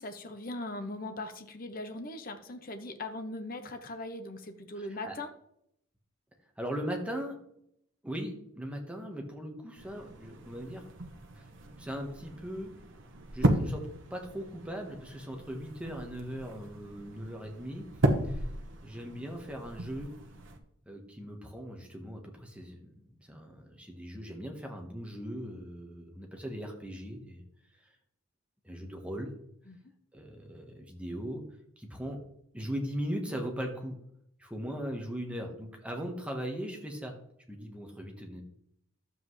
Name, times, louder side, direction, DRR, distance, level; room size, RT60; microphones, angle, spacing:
voice 1, 0.0-5.3 29.7-29.8, left 2 dB, 40° left, 7 dB, 0.8 m, -40 dB
voice 2, 6.6-7.4 8.0-10.9 11.3-11.4 11.8-12.7 13.3-17.9 18.2-18.5 18.8-20.1 20.9-27.4 27.7-27.9 28.6-29.3 30.1-31.4 31.8-32.2 32.5-34.0 34.4-37.1 37.5-38.4, equal, 5° right, 2 dB, 1.3 m, -39 dB
sound 1, 9.8-20.6, right 1 dB, 55° right, 1.1 m, -35 dB
12.0 x 7.7 x 3.2 m, 0.74 s
head